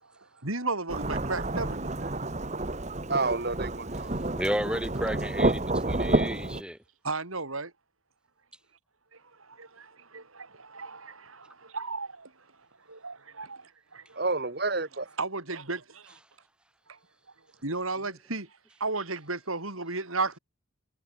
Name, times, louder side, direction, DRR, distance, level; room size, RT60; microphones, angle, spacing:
voice 1, 0.0-2.2 7.0-7.7 9.1-12.3 12.9-14.3 14.9-16.2 16.9-17.0 17.6-20.4, right 3 dB, 80° right, 5.5 m, -35 dB
Thunderstorm / Rain, 0.9-6.6, right 2 dB, 35° right, 1.6 m, -29 dB
voice 2, 3.1-4.1 14.2-15.1, right 3 dB, 50° right, 2.1 m, -29 dB
voice 3, 4.3-6.8, equal, 5° right, 5.0 m, -32 dB
head